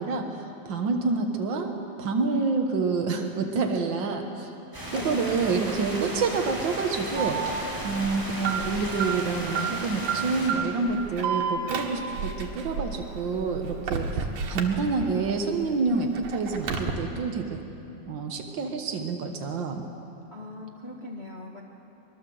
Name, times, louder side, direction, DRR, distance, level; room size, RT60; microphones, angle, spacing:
voice 1, 0.0-4.5 4.9-7.4 7.8-17.4 18.1-19.8, right 4 dB, 90° right, 3 dB, 1.0 m, -28 dB
sound 1, 4.7-10.5, equal, 5° right, 6.0 m, -35 dB
voice 2, 4.9-5.2 20.3-21.6, left 2 dB, 70° left, -2 dB, 0.6 m, -40 dB
Alarm, 7.1-15.3 15.7-16.9, right 6 dB, 70° right, 3.2 m, -31 dB
24.0 x 21.5 x 7.8 m, 2.9 s
omnidirectional pair, 4.2 m